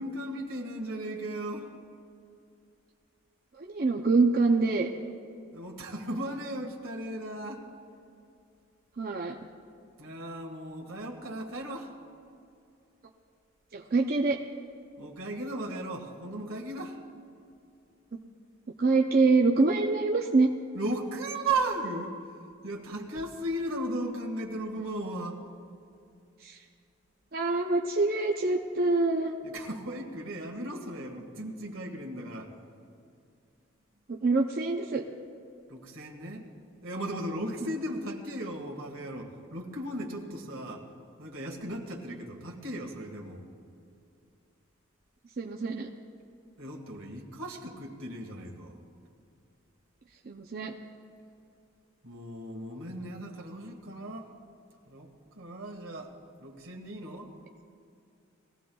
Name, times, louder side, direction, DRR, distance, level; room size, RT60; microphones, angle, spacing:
voice 1, 0.0-1.7 5.5-7.7 10.0-11.9 15.0-17.0 20.7-22.1 22.6-25.4 29.4-32.5 35.7-36.5 36.8-40.9 41.2-43.5 46.6-48.8 52.0-54.3 54.9-55.1 55.3-56.1 56.4-57.3, right 1 dB, 80° right, 2 dB, 1.8 m, -36 dB
voice 2, 3.6-4.9 9.0-9.4 13.7-14.4 18.8-20.5 26.4-26.6 27.3-29.4 34.1-35.0 37.6-37.7 45.4-45.9 50.3-50.7, right 3 dB, 45° right, 1 dB, 0.6 m, -25 dB
21.0 x 15.5 x 2.3 m, 2.5 s
head